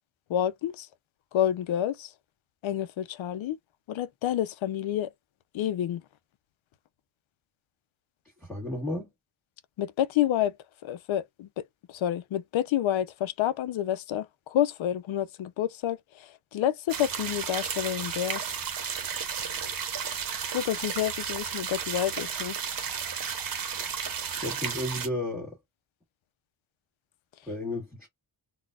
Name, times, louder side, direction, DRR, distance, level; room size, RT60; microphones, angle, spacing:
voice 1, 0.3-0.9 1.3-2.1 2.6-3.6 3.9-5.1 5.5-6.0 9.8-10.6 10.8-18.4 20.5-22.6, left 11 dB, 90° left, 0.6 m, -29 dB
voice 2, 8.4-9.1 24.4-25.6 27.4-28.1, left 1 dB, ahead, 1.4 m, -33 dB
sound 1, 16.9-25.1, right 7 dB, 45° right, 0.9 m, -33 dB
3.9 x 2.3 x 2.3 m
wide cardioid pair, 165°, 46 cm